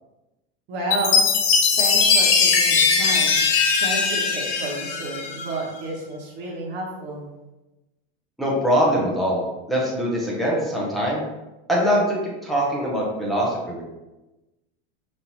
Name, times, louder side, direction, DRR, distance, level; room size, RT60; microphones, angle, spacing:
voice 1, 0.7-1.3 1.8-3.4 3.8-7.3, right 2 dB, 35° right, -3 dB, 1.1 m, -31 dB
Chime, 0.9-5.5, left 5 dB, 65° left, 0.7 m, -19 dB
voice 2, 8.4-9.4 9.7-11.2 11.7-12.2 12.4-13.8, equal, ahead, -5 dB, 0.6 m, -22 dB
5.3 x 2.8 x 2.9 m, 1.0 s
supercardioid pair, 165°, 33 cm